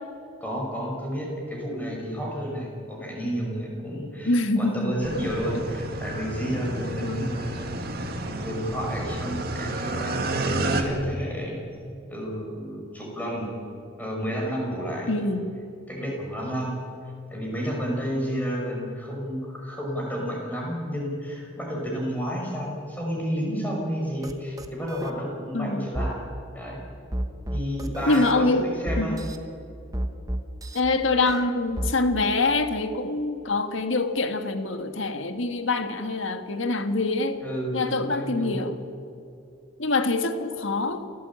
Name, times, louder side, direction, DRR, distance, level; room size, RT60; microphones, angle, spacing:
voice 1, 0.4-11.5 12.1-13.5 14.0-15.4 15.9-16.7 17.3-26.2 26.5-26.8 27.5-29.2 37.4-38.6, equal, 10° left, -2 dB, 6.1 m, -31 dB
voice 2, 4.3-5.0 7.0-7.3 15.1-15.5 25.5-25.9 28.1-28.7 29.0-29.2 30.7-37.4 37.7-38.8 39.8-41.0, left 2 dB, 75° left, 8 dB, 1.8 m, -25 dB
sound 1, 5.0-10.8, right 2 dB, 50° right, 2.2 m, -30 dB
sound 2, 24.2-24.3 24.6-25.1 25.9-26.1 27.1-28.3 28.9-29.4 29.9-30.8 31.3-31.9, right 1 dB, 15° right, 1.2 m, -30 dB
28.5 x 15.5 x 8.8 m, 2.6 s
head